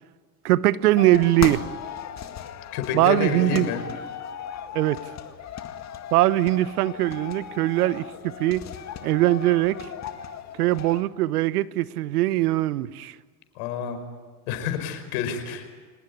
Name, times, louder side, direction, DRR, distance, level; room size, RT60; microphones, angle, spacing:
voice 1, 0.4-1.6 2.9-3.7 4.7-5.0 6.1-8.1 8.4-8.6 9.0-9.9 10.6-13.1, right 16 dB, 80° right, 1.0 m, -21 dB
sound 1, 1.0-11.0, left 9 dB, 35° left, 2.1 m, -36 dB
voice 2, 2.7-3.8 13.6-14.0 14.5-15.7, left 8 dB, 70° left, 5.3 m, -29 dB
25.5 x 19.5 x 9.9 m
hypercardioid pair, 100°, 45 cm